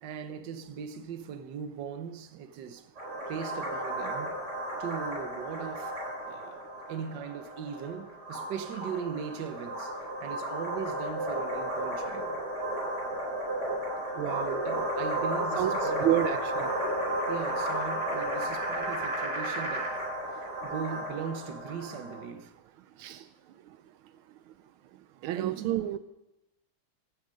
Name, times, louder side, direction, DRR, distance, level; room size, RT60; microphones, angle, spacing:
voice 1, 0.0-2.9 3.3-4.3 4.8-6.0 6.2-9.9 10.2-12.4 14.5-16.1 17.3-20.0 20.2-22.5 25.3-25.9, right 7 dB, 65° right, 1.5 m, -39 dB
sound 1, 3.0-22.2, right 1 dB, 35° right, 4.7 m, -33 dB
sound 2, 13.4-20.0, right 2 dB, 10° right, 1.8 m, -41 dB
voice 2, 14.1-14.6 15.6-16.7 23.0-23.2 25.2-26.0, right 12 dB, 85° right, 1.5 m, -30 dB
15.5 x 12.0 x 5.2 m
omnidirectional pair, 2.3 m